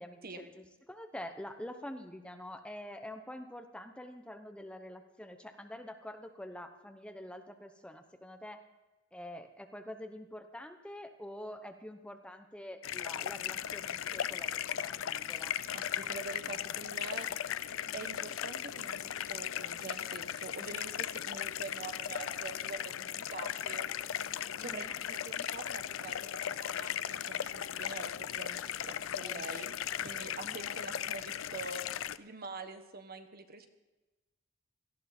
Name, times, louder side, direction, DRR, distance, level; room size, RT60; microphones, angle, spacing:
voice 1, 0.0-8.6 9.1-15.6 20.6-20.7 24.5-24.9 29.2-29.4 30.4-30.6, left 1 dB, 5° left, 6 dB, 0.9 m, -46 dB
sound 1, 12.8-32.2, left 10 dB, 75° left, 0.5 m, -37 dB
voice 2, 15.7-17.3 17.9-23.8 24.6-29.7 30.0-33.7, right 3 dB, 50° right, 7 dB, 1.3 m, -45 dB
18.0 x 14.0 x 4.3 m, 1.1 s
head